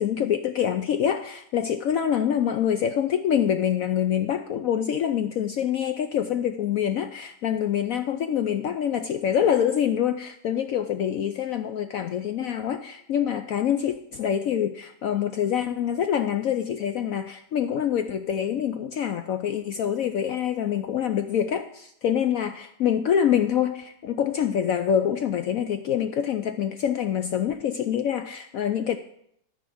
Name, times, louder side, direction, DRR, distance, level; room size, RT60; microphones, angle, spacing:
voice 1, 0.0-29.0, left 9 dB, 65° left, 8 dB, 0.9 m, -25 dB
13.5 x 4.9 x 8.5 m, 0.73 s
omnidirectional pair, 1.8 m